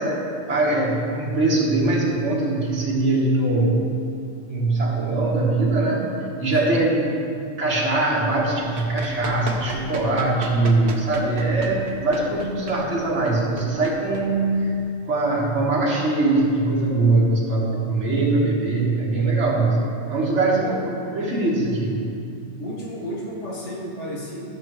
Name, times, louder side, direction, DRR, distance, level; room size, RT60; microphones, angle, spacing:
voice 1, 0.0-3.8 4.5-6.9 7.3-14.7 15.1-19.8 20.1-22.0, right 2 dB, 85° right, -5 dB, 1.9 m, -22 dB
Run, 8.7-14.8, right 3 dB, 70° right, 1.0 m, -35 dB
voice 2, 22.6-24.5, equal, 80° left, -4 dB, 1.9 m, -32 dB
13.0 x 6.6 x 3.1 m, 2.6 s
omnidirectional pair, 1.2 m